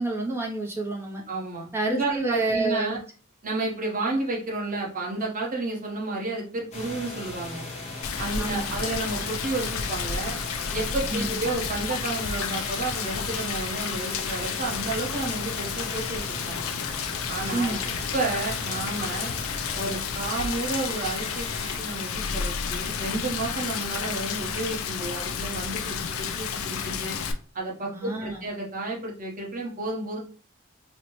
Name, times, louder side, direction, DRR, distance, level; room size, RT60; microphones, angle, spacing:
voice 1, 0.0-1.2 1.7-3.0 8.4-8.7 11.1-11.4 17.5-17.8 27.9-28.4, right 2 dB, 10° right, -1 dB, 0.5 m, -28 dB
voice 2, 1.3-3.0 3.4-7.7 8.2-10.4 10.7-16.7 17.3-19.3 19.7-27.2 27.5-30.2, right 2 dB, 40° right, -3 dB, 1.0 m, -31 dB
sound 1, 6.7-21.8, left 2 dB, 35° left, 0.8 m, -38 dB
Rain, 8.0-27.3, left 6 dB, 90° left, 0.4 m, -31 dB
4.1 x 2.0 x 2.9 m, 0.40 s
head